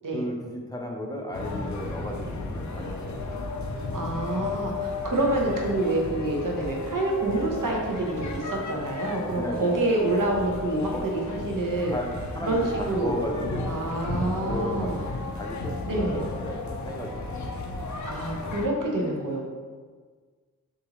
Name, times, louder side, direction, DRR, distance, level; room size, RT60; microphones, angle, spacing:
voice 1, 0.1-3.2 9.4-9.9 10.9-11.0 11.9-13.7 14.2-15.1 15.4-17.4 19.0-19.1, equal, 10° left, 0 dB, 0.6 m, -34 dB
sound 1, 1.3-18.7, left 3 dB, 60° left, 0.6 m, -34 dB
voice 2, 3.9-11.9 12.4-13.1 13.7-15.0 15.8-16.2 18.1-19.4, right 2 dB, 70° right, -2 dB, 1.0 m, -27 dB
6.4 x 2.7 x 3.1 m, 1.5 s
wide cardioid pair, 90°, 34 cm